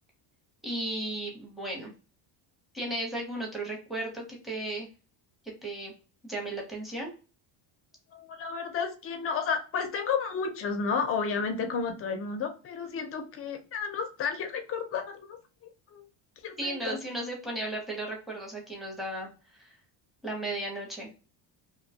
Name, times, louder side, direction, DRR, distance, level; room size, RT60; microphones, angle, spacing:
voice 1, 0.6-1.9 2.7-4.9 5.6-5.9 6.2-7.1 16.6-19.3 19.6-19.7 20.2-21.1, right 1 dB, ahead, -2 dB, 0.7 m, -35 dB
voice 2, 8.1-16.0 16.4-17.0, left 5 dB, 30° left, 6 dB, 0.4 m, -32 dB
2.6 x 2.2 x 2.6 m, 0.34 s
cardioid pair, 145°, 45 cm